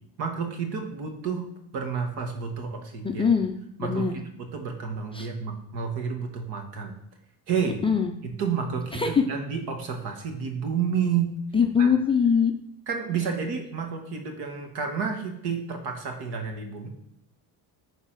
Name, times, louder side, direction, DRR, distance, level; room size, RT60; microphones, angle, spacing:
voice 1, 0.2-1.5 1.7-3.2 3.8-6.9 7.5-7.8 8.4-11.3 11.8-11.9 12.9-16.9, right 6 dB, 70° right, 4 dB, 1.9 m, -30 dB
voice 2, 3.0-3.5 3.8-4.1 5.1-5.3 7.8-8.1 8.9-9.2 11.5-12.5, left 6 dB, 15° left, 2 dB, 0.4 m, -22 dB
10.0 x 4.0 x 6.0 m, 0.75 s
cardioid pair, 170°, 40 cm